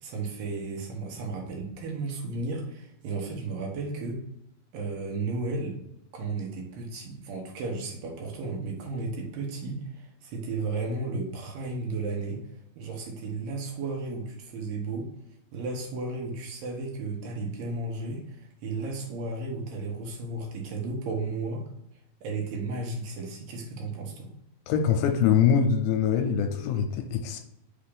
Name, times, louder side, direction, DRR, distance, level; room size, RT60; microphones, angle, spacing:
voice 1, 0.0-4.2 4.7-5.8 6.1-12.4 12.8-15.1 15.5-21.7 22.2-24.3, right 3 dB, 75° right, 0 dB, 2.4 m, -34 dB
voice 2, 24.7-27.4, left 7 dB, 80° left, 5 dB, 2.3 m, -23 dB
5.7 x 2.5 x 3.5 m, 0.80 s
omnidirectional pair, 4.2 m